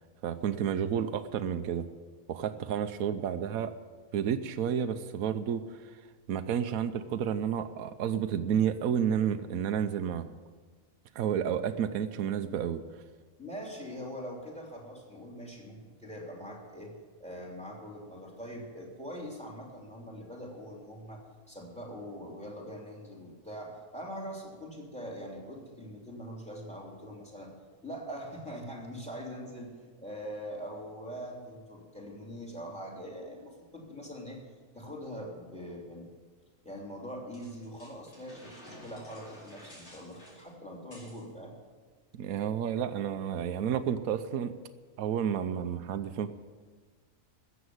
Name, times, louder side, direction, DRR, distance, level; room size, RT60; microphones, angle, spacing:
voice 1, 0.2-1.9 2.3-3.7 4.1-5.9 6.3-10.3 11.1-12.8 42.1-44.5 45.0-46.3, right 8 dB, 80° right, 10 dB, 1.1 m, -31 dB
voice 2, 13.4-16.9 17.2-21.2 21.5-27.5 27.8-34.4 34.7-36.1 36.6-41.5, equal, 5° left, -1 dB, 3.2 m, -43 dB
sound 1, 37.3-41.2, equal, 80° left, 4.9 m, -52 dB
14.0 x 8.2 x 9.7 m, 1.5 s
omnidirectional pair, 1.5 m